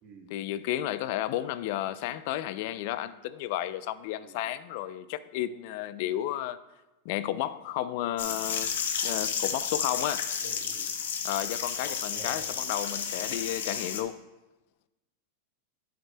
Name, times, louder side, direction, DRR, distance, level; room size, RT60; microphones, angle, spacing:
voice 1, 0.3-6.6 7.1-8.7 9.0-10.3 11.2-14.2, left 13 dB, 55° left, 0.4 m, -32 dB
sound 1, 8.2-14.0, left 7 dB, 90° left, 0.8 m, -32 dB
voice 2, 10.4-10.9 11.8-12.5, right 3 dB, 40° right, 2.0 m, -50 dB
9.3 x 7.6 x 2.2 m
supercardioid pair, 140°, 0 cm